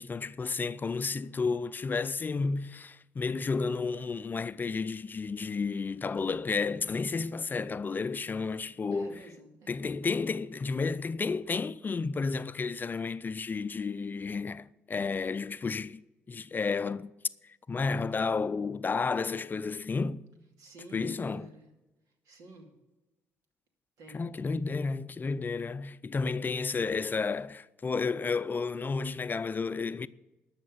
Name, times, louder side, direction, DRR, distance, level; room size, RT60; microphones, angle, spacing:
voice 1, 0.0-9.2 9.7-16.0 16.3-17.1 17.7-20.2 20.9-21.5 24.1-30.1, left 4 dB, 35° left, 0.5 m, -32 dB
voice 2, 8.9-10.2 20.6-21.7 22.2-22.7 24.0-24.2, right 2 dB, 75° right, 2.5 m, -50 dB
12.5 x 6.5 x 7.8 m
supercardioid pair, 65°, 6 cm